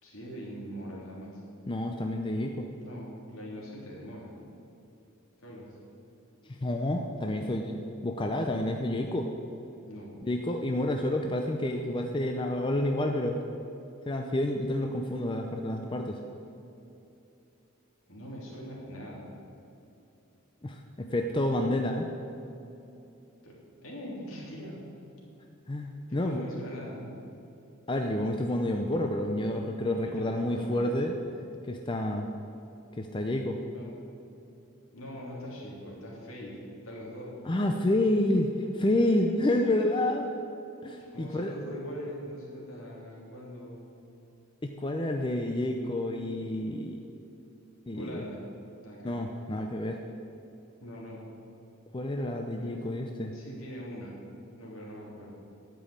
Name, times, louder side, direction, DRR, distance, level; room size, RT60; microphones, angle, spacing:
voice 1, 0.0-1.4 2.8-4.3 5.4-5.8 8.4-8.7 9.8-10.2 18.1-19.3 23.4-23.6 23.8-24.9 26.1-27.1 29.9-31.0 33.7-34.0 34.9-37.3 41.0-43.9 47.9-48.4 48.8-49.1 50.8-51.2 52.6-52.9 53.3-54.2 54.5-55.3, equal, 70° left, -4 dB, 2.9 m, -42 dB
voice 2, 1.7-2.7 6.5-9.3 10.2-13.4 14.1-16.2 20.6-22.1 25.7-26.4 27.9-31.1 31.6-32.3 33.0-33.6 37.5-40.3 40.8-41.5 44.6-47.0 47.9-48.2 49.0-50.0 51.9-53.3, left 1 dB, 25° left, 3 dB, 0.5 m, -29 dB
11.0 x 5.3 x 8.6 m, 2.8 s
head